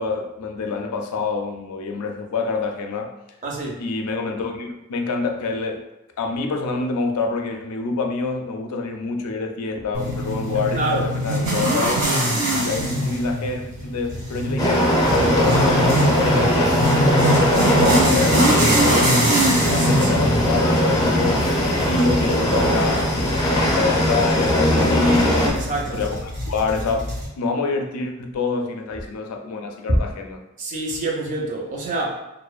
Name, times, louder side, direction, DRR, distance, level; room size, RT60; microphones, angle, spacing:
voice 1, 0.0-3.1 3.8-5.8 6.2-12.0 12.6-16.9 17.3-19.3 19.6-23.1 23.4-27.1 27.4-30.4, left 3 dB, 90° left, 4 dB, 0.4 m, -26 dB
voice 2, 3.4-3.8 10.7-11.1 18.4-18.7 19.8-20.2 25.5-26.0 29.9-30.0 30.6-32.2, right 2 dB, 35° right, -1 dB, 0.5 m, -26 dB
sound 1, 9.9-27.3, equal, 90° right, 1.1 m, -24 dB
sound 2, 14.6-25.5, equal, 20° left, 0.5 m, -20 dB
2.5 x 2.1 x 2.3 m, 0.94 s
head